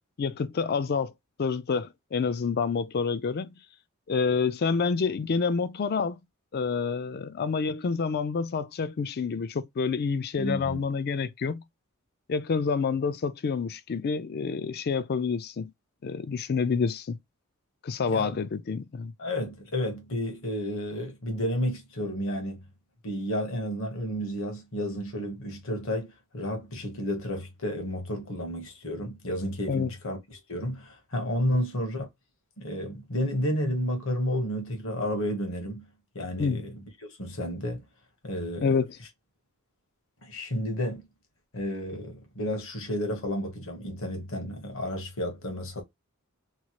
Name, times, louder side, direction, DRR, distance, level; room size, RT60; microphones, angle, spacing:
voice 1, 0.2-1.1 1.4-3.6 4.1-6.2 6.5-11.6 12.3-15.7 16.0-17.2 17.8-19.1 29.7-29.9 31.5-31.6 36.4-36.6 38.6-38.9, left 5 dB, 45° left, 0.4 m, -28 dB
voice 2, 10.4-10.8 18.1-18.4 19.2-22.6 23.0-32.1 32.6-35.9 36.1-37.9 38.2-38.7 40.2-41.1 41.5-45.8, equal, 65° left, 1.1 m, -31 dB
3.1 x 2.3 x 2.9 m
head